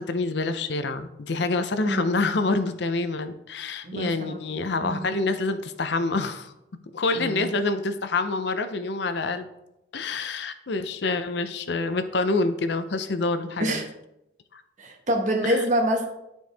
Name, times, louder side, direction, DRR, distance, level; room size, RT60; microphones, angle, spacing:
voice 1, 0.0-6.5 6.9-9.5 9.9-13.8 14.5-14.6 15.4-15.6, left 3 dB, 60° left, 10 dB, 0.6 m, -27 dB
voice 2, 3.8-4.4 4.8-5.2 7.1-7.5 13.6-13.9 14.8-16.1, right 1 dB, 40° right, 1 dB, 1.2 m, -26 dB
12.0 x 4.5 x 3.4 m, 0.87 s
head